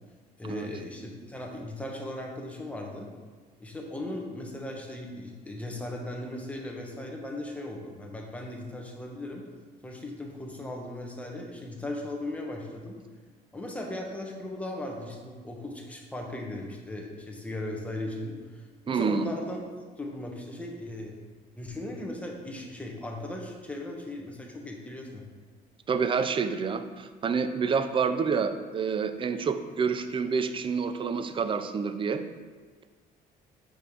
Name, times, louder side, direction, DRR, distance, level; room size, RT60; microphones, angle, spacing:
voice 1, 0.4-3.1 3.6-9.4 9.8-13.0 13.5-19.6 20.0-21.1 21.6-25.3, left 1 dB, 10° left, 0 dB, 1.0 m, -37 dB
voice 2, 18.9-19.3 25.9-32.2, right 5 dB, 30° right, 10 dB, 0.4 m, -28 dB
5.0 x 4.5 x 5.0 m, 1.5 s
cardioid pair, 110°, 17 cm